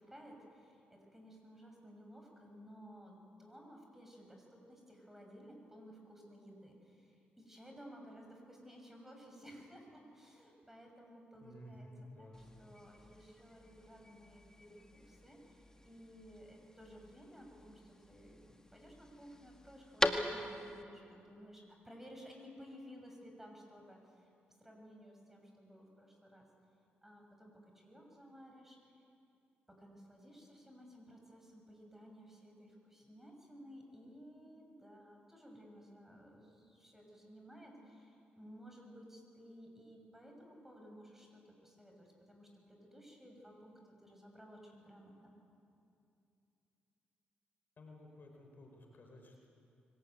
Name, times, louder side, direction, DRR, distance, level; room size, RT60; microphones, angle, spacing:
voice 1, 0.0-11.9 12.2-24.3 24.6-26.5 27.0-29.1 29.7-45.3, equal, 10° right, 1 dB, 6.6 m, -56 dB
voice 2, 11.4-12.4 47.8-49.5, left 1 dB, 50° left, 1 dB, 5.1 m, -54 dB
sound 1, 12.3-20.8, left 1 dB, 15° left, 1.8 m, -42 dB
23.5 x 18.5 x 9.3 m, 2.6 s
supercardioid pair, 60°, 4 cm